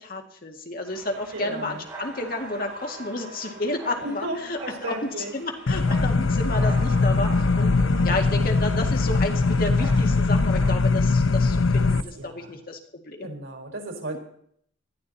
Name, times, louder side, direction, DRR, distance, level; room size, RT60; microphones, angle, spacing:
voice 1, 0.0-7.8 8.0-13.3, left 2 dB, 45° left, 3 dB, 2.1 m, -31 dB
sound 1, 0.9-11.1, right 1 dB, 15° right, 6.8 m, -45 dB
sound 2, 0.9-11.0, right 2 dB, 55° right, 7.2 m, -44 dB
voice 2, 1.3-1.8 4.0-5.3 11.7-12.6 13.2-14.2, right 1 dB, 90° right, 2 dB, 4.6 m, -35 dB
sound 3, 5.7-12.0, left 3 dB, 85° left, 0.7 m, -21 dB
19.5 x 13.5 x 4.1 m, 0.66 s
head